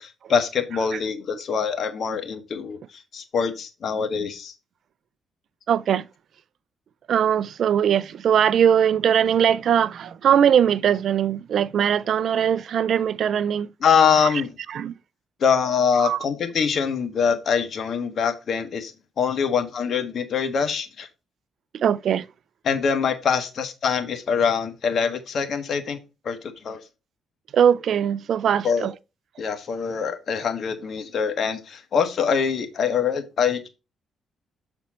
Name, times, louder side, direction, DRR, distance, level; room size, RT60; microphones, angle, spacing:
voice 1, 0.0-2.8 3.1-4.5 13.8-14.5 15.4-18.9 19.2-21.1 22.6-26.0 26.2-26.8 28.6-28.9 29.4-33.7, left 6 dB, 55° left, 1.4 m, -24 dB
voice 2, 5.7-6.1 7.1-13.7 14.7-14.9 16.0-16.2 21.7-22.3 27.5-28.9, right 8 dB, 65° right, 0.3 m, -20 dB
7.3 x 4.3 x 4.1 m
cardioid pair, 90°, 0 cm